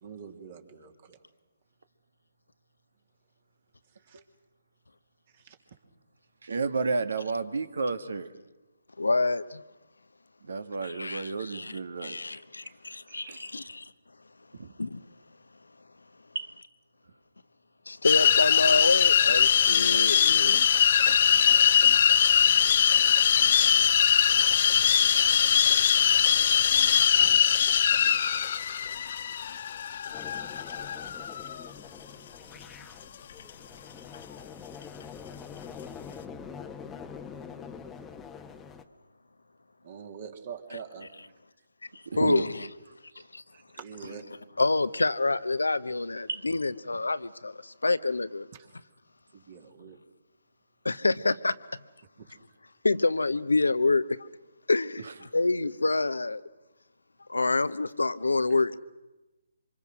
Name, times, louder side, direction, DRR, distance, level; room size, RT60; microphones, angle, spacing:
voice 1, 0.0-1.2 4.1-4.2 5.4-5.5 12.3-12.7 13.1-13.5 39.8-41.1 43.5-44.2 49.3-50.0 52.2-52.3 58.5-58.6, right 7 dB, 45° right, 3.1 m, -45 dB
voice 2, 6.4-8.3 10.5-12.2 13.3-13.4 14.6-14.7 16.4-16.5 42.1-42.4 46.3-46.4, right 4 dB, 65° right, 1.9 m, -31 dB
voice 3, 9.0-9.6 10.8-13.8 14.8-15.0 17.9-20.7 42.2-42.7 43.3-43.4 44.6-48.5 50.8-51.6 52.8-54.0 54.7-56.4 57.3-58.8, left 3 dB, 80° left, 1.0 m, -27 dB
sound 1, 18.0-31.7, left 8 dB, 45° left, 0.8 m, -22 dB
sound 2, 30.1-38.8, left 6 dB, 10° left, 1.2 m, -44 dB
27.0 x 25.5 x 6.3 m
figure-of-eight pair, 140°, 0 cm